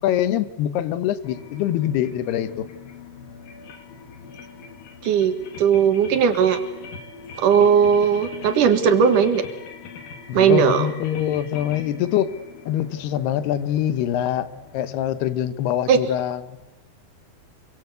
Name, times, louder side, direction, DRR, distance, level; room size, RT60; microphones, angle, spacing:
voice 1, 0.0-2.7 10.3-12.3 12.7-14.5 14.7-16.6, left 11 dB, 80° left, 14 dB, 3.2 m, -24 dB
sound 1, 1.2-15.2, left 6 dB, 65° left, 3.7 m, -41 dB
voice 2, 5.0-6.6 7.4-9.4 10.3-10.9 15.9-16.0, right 7 dB, 60° right, 9 dB, 2.9 m, -18 dB
26.5 x 23.5 x 8.2 m, 0.96 s
omnidirectional pair, 4.6 m